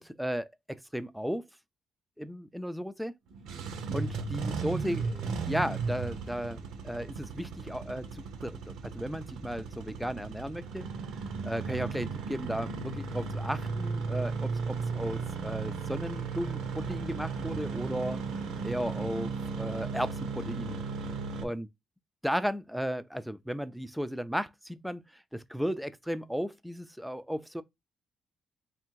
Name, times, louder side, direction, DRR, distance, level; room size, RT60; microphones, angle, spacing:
voice 1, 0.0-1.5 2.2-3.1 3.9-10.9 11.4-18.2 18.6-20.8 21.4-21.7 22.2-27.6, equal, ahead, 0.4 m, -35 dB
Engine starting, 3.3-21.4, right 4 dB, 85° right, 0.7 m, -35 dB
3.4 x 2.5 x 4.5 m
cardioid pair, 90°, 0 cm